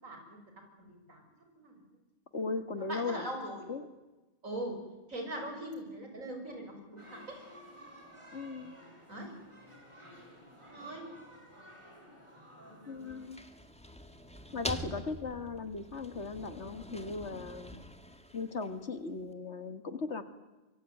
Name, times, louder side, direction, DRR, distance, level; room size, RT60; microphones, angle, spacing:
voice 1, 0.0-0.4 0.9-1.2 1.6-1.7 2.9-3.7 4.4-4.8 5.1-7.4 9.1-9.3 10.6-11.1 12.6-13.3 14.3-14.5, right 1 dB, 80° right, 3 dB, 6.5 m, -41 dB
voice 2, 2.3-3.3 3.7-3.9 8.3-8.7 12.9-13.4 14.5-17.8 18.3-20.2, left 4 dB, 60° left, 10 dB, 2.1 m, -37 dB
sound 1, 7.0-13.3, equal, 20° right, 7.0 m, -54 dB
sound 2, 13.0-19.0, equal, 5° left, 1.8 m, -45 dB
25.0 x 23.0 x 9.4 m, 1.1 s
omnidirectional pair, 1.4 m